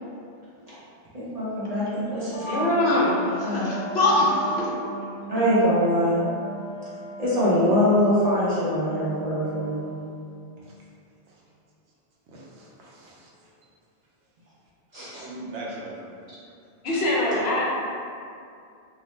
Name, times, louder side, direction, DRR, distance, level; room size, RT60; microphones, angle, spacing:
voice 1, 1.1-2.7 3.4-3.8 5.3-6.2 7.2-9.9 14.9-15.1, left 1 dB, 45° right, -10 dB, 0.6 m, -23 dB
voice 2, 2.1-4.7 15.1-15.3 16.8-17.7, left 1 dB, 65° left, -6 dB, 0.8 m, -23 dB
Wind instrument woodwind instrument, 3.4-10.1, right 2 dB, 45° left, 0.5 m, -37 dB
voice 3, 12.3-13.3 14.9-16.0, right 2 dB, 75° right, -4 dB, 0.8 m, -39 dB
2.7 x 2.0 x 3.1 m, 2.4 s
omnidirectional pair, 1.2 m